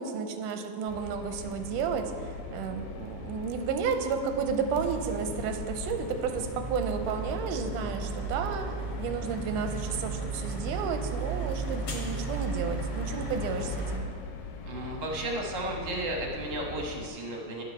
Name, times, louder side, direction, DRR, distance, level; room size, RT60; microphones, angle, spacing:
voice 1, 0.0-14.0, right 6 dB, 85° right, 6 dB, 2.2 m, -32 dB
sound 1, 0.9-17.1, left 4 dB, 75° left, 2.2 m, -42 dB
sound 2, 4.7-14.0, right 2 dB, 45° left, 1.8 m, -35 dB
voice 2, 14.6-17.6, right 1 dB, 55° right, -1 dB, 1.4 m, -34 dB
11.0 x 7.5 x 5.5 m, 2.3 s
omnidirectional pair, 3.7 m